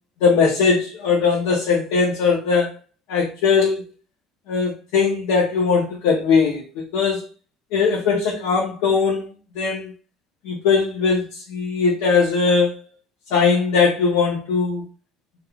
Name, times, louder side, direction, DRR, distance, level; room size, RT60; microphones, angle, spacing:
voice 1, 0.2-2.7 3.1-3.9 4.5-7.2 7.7-9.3 9.6-9.9 10.4-12.7 13.3-14.8, left 5 dB, 85° left, 0.7 m, -20 dB
2.3 x 2.3 x 3.0 m
cardioid pair, 165°, 0 cm